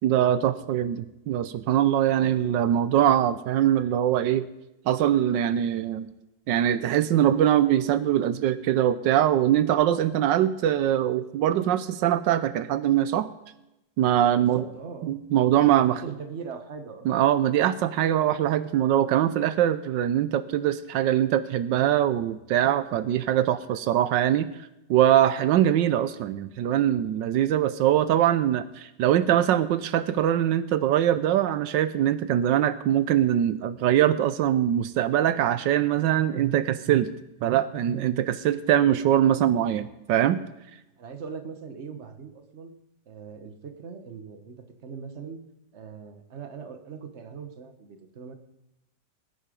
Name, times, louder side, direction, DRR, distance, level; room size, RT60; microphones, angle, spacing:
voice 1, 0.0-4.5 4.9-6.1 6.5-13.3 14.0-14.6 15.0-16.0 17.1-24.5 24.9-37.1 37.4-40.4, right 11 dB, 85° right, 13 dB, 1.4 m, -22 dB
voice 2, 14.3-15.1 15.7-17.1 41.0-42.7 43.1-45.4 45.7-48.3, right 6 dB, 40° right, 7 dB, 1.5 m, -40 dB
20.0 x 10.0 x 5.2 m, 0.91 s
omnidirectional pair, 1.9 m